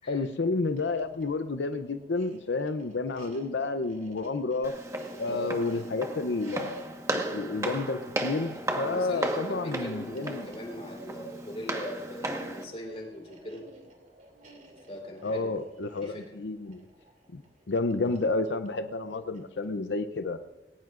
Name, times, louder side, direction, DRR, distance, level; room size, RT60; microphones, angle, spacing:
voice 1, 0.1-4.7 5.2-10.5 15.2-16.8 17.3-17.4 17.7-20.4, left 3 dB, 85° left, 8 dB, 0.6 m, -30 dB
sound 1, 0.6-19.9, right 1 dB, 50° right, 2.8 m, -55 dB
Walk footsteps, 4.6-12.6, right 1 dB, 20° right, 1.3 m, -35 dB
voice 2, 5.3-5.8 8.8-13.6 14.9-15.7 16.0-16.2, equal, 35° left, 0 dB, 3.8 m, -40 dB
20.5 x 18.5 x 2.5 m, 1.1 s
head